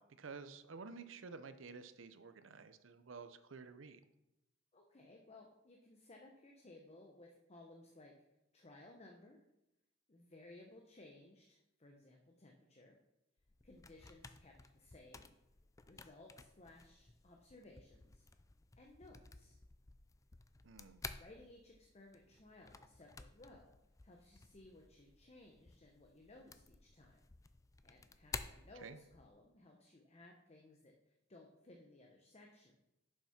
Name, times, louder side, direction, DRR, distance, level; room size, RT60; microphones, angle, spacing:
voice 1, 0.0-4.0 20.6-21.0 28.8-29.0, right 4 dB, 75° right, 11 dB, 0.7 m, -52 dB
voice 2, 4.7-8.1 8.5-9.4 10.1-13.0 13.6-15.3 15.8-18.3 18.8-19.6 21.2-23.8 24.0-27.2 27.8-32.8, left 2 dB, 35° left, 1 dB, 0.9 m, -60 dB
sound 1, 13.4-29.4, left 4 dB, 15° left, 0.4 m, -54 dB
7.3 x 5.7 x 5.8 m, 0.90 s
head